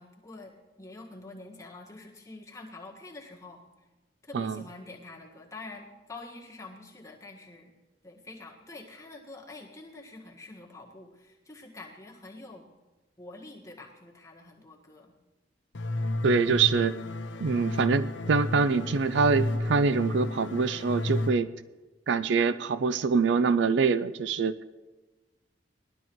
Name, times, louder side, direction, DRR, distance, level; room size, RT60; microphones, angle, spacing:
voice 1, 0.0-3.9 4.2-7.7 8.0-12.7 13.2-15.1, left 2 dB, 15° left, -3 dB, 1.6 m, -46 dB
sound 1, 15.7-21.3, left 2 dB, 85° left, 0.8 m, -32 dB
voice 2, 16.2-17.0 17.4-21.5 22.1-24.6, right 5 dB, 80° right, 14 dB, 0.4 m, -25 dB
20.0 x 12.0 x 3.1 m, 1.2 s
head